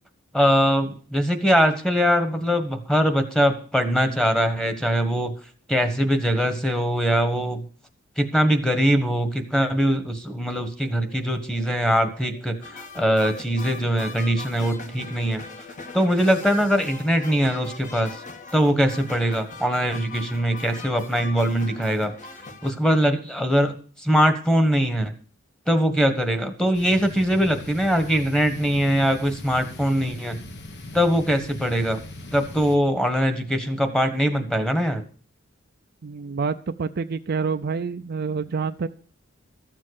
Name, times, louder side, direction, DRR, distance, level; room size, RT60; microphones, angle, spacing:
voice 1, 0.3-5.3 5.7-7.6 8.2-12.6 12.9-15.4 15.9-18.1 18.5-22.1 22.6-23.7 24.0-25.1 25.7-30.4 30.9-32.0 32.3-35.0, equal, 5° left, 8 dB, 1.4 m, -22 dB
sound 1, 10.5-22.2, left 4 dB, 90° left, 5.4 m, -51 dB
sound 2, 12.6-22.7, left 3 dB, 40° left, 1.4 m, -40 dB
sound 3, 26.7-32.8, left 2 dB, 60° left, 1.4 m, -39 dB
voice 2, 36.0-38.9, right 5 dB, 50° right, 9 dB, 0.5 m, -27 dB
13.5 x 7.5 x 6.5 m, 0.43 s
head